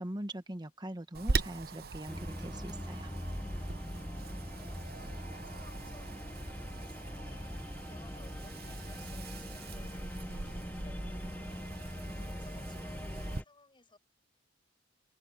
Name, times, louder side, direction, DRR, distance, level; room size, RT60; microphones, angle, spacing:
voice 1, 0.0-3.1, right 1 dB, 20° right, 1.2 m, -41 dB
Wind, 1.1-13.4, right 3 dB, 50° right, 0.9 m, -41 dB
sound 1, 2.1-13.4, left 1 dB, 10° left, 0.7 m, -42 dB
sound 2, 3.3-11.4, left 1 dB, 40° left, 0.9 m, -55 dB
voice 2, 4.2-14.0, left 3 dB, 25° left, 6.7 m, -61 dB
head